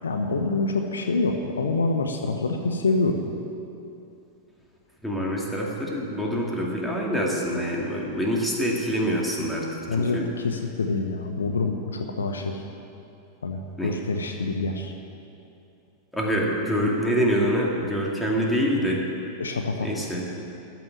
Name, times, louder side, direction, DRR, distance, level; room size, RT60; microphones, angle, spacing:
voice 1, 0.0-3.2 9.9-12.6 13.4-14.9 19.4-20.1, left 3 dB, 70° left, 5 dB, 0.9 m, -26 dB
voice 2, 5.0-9.7 10.0-10.3 13.8-14.0 16.1-19.0 19.8-20.3, equal, 5° left, -3 dB, 2.4 m, -25 dB
14.0 x 6.1 x 9.6 m, 2.7 s
figure-of-eight pair, 90°, 0 cm